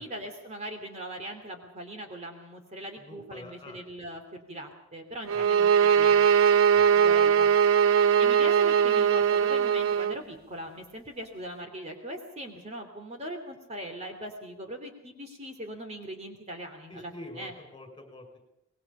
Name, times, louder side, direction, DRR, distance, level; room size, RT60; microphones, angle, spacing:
voice 1, 0.0-6.3 6.9-7.5 8.2-17.5, right 1 dB, 30° right, 5 dB, 2.9 m, -40 dB
voice 2, 3.0-3.8 5.3-5.4 6.7-6.9 16.9-18.4, left 1 dB, 20° left, 5 dB, 6.1 m, -46 dB
sound 1, 5.3-10.2, right 8 dB, 80° right, 0.9 m, -21 dB
25.0 x 21.0 x 5.6 m, 0.87 s
head